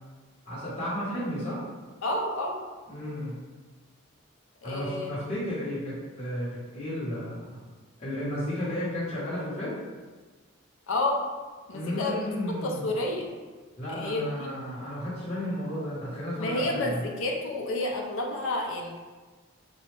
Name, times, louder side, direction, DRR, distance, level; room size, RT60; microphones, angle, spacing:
voice 1, 0.5-1.6 2.9-3.4 4.6-7.6 8.0-9.7 11.7-12.9 13.8-17.0, equal, 30° left, -11 dB, 1.3 m, -33 dB
voice 2, 2.0-2.5 4.6-5.1 10.9-11.2 11.7-12.3 12.6-13.3 13.9-14.5 16.4-19.0, left 2 dB, 80° left, 0 dB, 0.5 m, -30 dB
3.1 x 2.7 x 3.3 m, 1.4 s
head